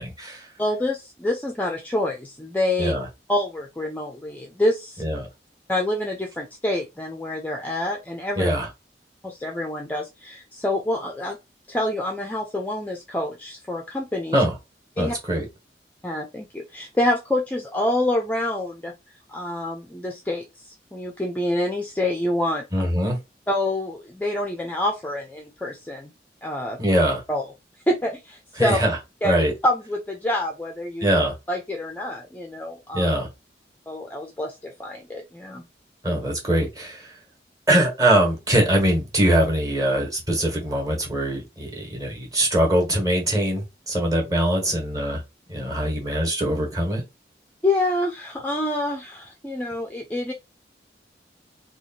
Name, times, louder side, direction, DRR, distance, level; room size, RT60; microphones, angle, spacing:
voice 1, 0.0-0.5 2.8-3.0 5.0-5.3 8.4-8.7 14.3-14.5 15.0-15.5 22.7-23.2 26.8-27.2 28.6-29.0 29.2-29.5 31.0-31.3 32.9-33.3 36.0-37.2 37.7-45.2 45.5-47.0, right 1 dB, 20° right, 1.2 m, -22 dB
voice 2, 0.6-2.9 3.3-5.0 5.7-8.5 9.2-11.4 11.7-14.4 15.0-15.1 16.0-18.9 19.3-22.6 23.5-26.1 26.4-26.8 27.3-27.4 27.9-28.8 29.2-29.3 29.6-31.1 31.5-33.1 33.9-35.6 47.6-50.3, left 1 dB, 10° left, 0.4 m, -27 dB
3.1 x 2.4 x 4.1 m
head